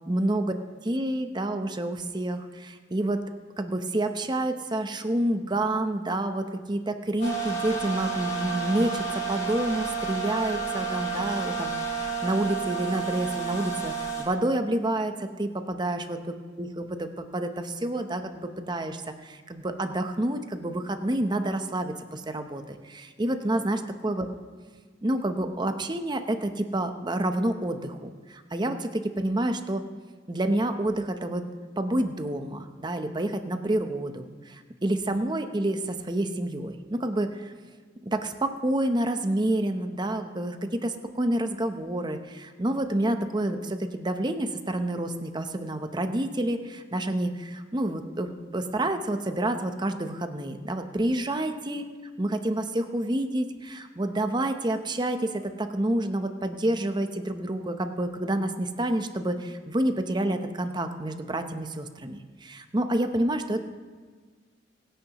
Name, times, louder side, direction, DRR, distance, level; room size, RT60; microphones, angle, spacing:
voice 1, 0.1-0.5 0.8-3.2 3.6-24.3 25.0-29.8 30.3-31.4 31.8-37.5 38.0-51.8 52.2-63.6, right 1 dB, 25° right, 7 dB, 0.8 m, -28 dB
sound 1, 7.2-14.2, right 5 dB, 40° left, 4.3 m, -31 dB
23.0 x 10.0 x 3.0 m, 1.5 s
head